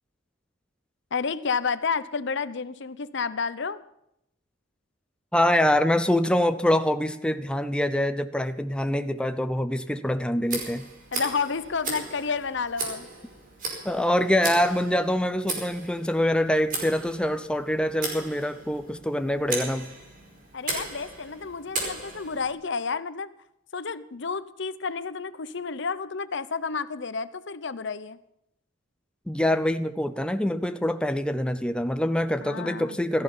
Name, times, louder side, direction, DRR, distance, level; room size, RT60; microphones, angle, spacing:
voice 1, 1.1-3.8 11.1-13.1 20.5-23.3 23.7-28.2 32.4-33.0, left 5 dB, 65° left, 0.8 m, -30 dB
voice 2, 5.3-10.9 13.8-19.9 29.3-33.2, left 1 dB, 5° left, 0.6 m, -25 dB
Tick, 10.4-22.5, right 3 dB, 45° right, 5.0 m, -36 dB
17.0 x 14.0 x 5.6 m
head